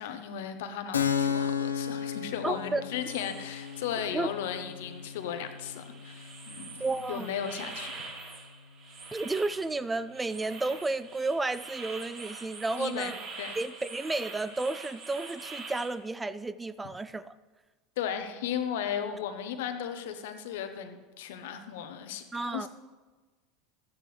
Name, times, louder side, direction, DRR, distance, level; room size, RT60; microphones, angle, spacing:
voice 1, 0.0-7.9 12.8-13.5 18.0-22.7, left 8 dB, 70° left, 8 dB, 0.9 m, -36 dB
Keyboard (musical), 0.9-8.2, left 7 dB, 85° left, 0.5 m, -35 dB
voice 2, 2.4-2.8 4.1-4.3 6.8-7.3 9.1-13.2 13.6-17.3 22.3-22.7, right 3 dB, 15° right, 15 dB, 0.4 m, -32 dB
sound 1, 3.1-15.9, right 4 dB, 50° right, 2.5 m, -45 dB
12.5 x 9.4 x 3.3 m, 1.3 s
hypercardioid pair, 80°, 0 cm